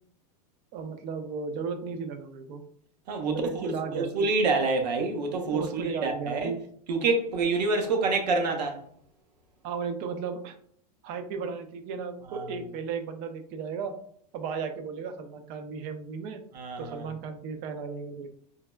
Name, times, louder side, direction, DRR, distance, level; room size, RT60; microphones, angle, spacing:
voice 1, 0.7-2.6 3.3-4.1 5.5-6.6 9.6-10.6 11.0-14.0 14.3-16.4 16.8-18.3, right 5 dB, 45° right, 0.4 m, -35 dB
voice 2, 3.1-6.5 6.9-8.8 12.3-12.5 16.5-17.0, right 3 dB, 85° right, 0.7 m, -27 dB
3.3 x 2.0 x 2.2 m
supercardioid pair, 130°, 21 cm